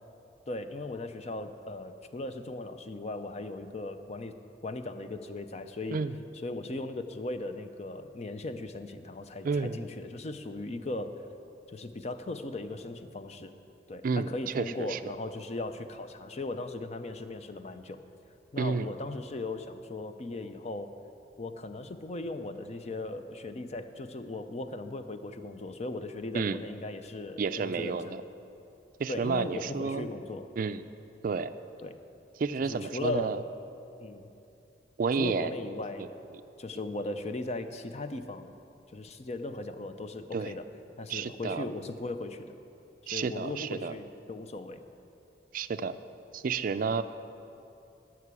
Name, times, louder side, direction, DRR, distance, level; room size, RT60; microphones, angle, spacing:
voice 1, 0.5-4.3 4.6-6.0 6.3-11.2 11.7-13.5 13.9-18.0 18.5-20.9 21.4-28.2 29.1-30.5 31.8-32.0 32.6-33.4 34.0-34.3 35.2-36.1 36.6-38.5 38.9-40.7 41.0-42.5 43.1-44.8 46.9-47.0, left 2 dB, 40° left, 9 dB, 0.5 m, -38 dB
voice 2, 9.4-9.8 14.0-15.0 18.6-18.9 26.3-26.6 27.4-28.2 29.0-30.1 30.6-30.8 31.2-31.5 32.4-33.4 35.0-35.5 40.3-40.5 41.1-41.7 43.1-43.9 45.5-46.0 46.3-47.0, right 5 dB, 50° right, 12 dB, 0.3 m, -30 dB
12.0 x 6.0 x 8.2 m, 2.8 s
head